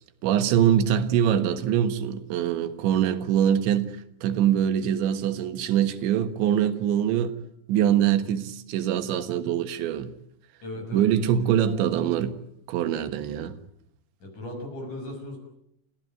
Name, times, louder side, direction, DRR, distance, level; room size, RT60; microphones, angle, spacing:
voice 1, 0.2-7.4 7.7-10.1 10.9-12.4 12.7-13.6, right 10 dB, 80° right, 3.7 m, -23 dB
voice 2, 10.6-11.1 11.3-11.6 14.2-15.4, left 1 dB, 40° left, 8.0 m, -37 dB
29.5 x 15.5 x 9.2 m
omnidirectional pair, 5.2 m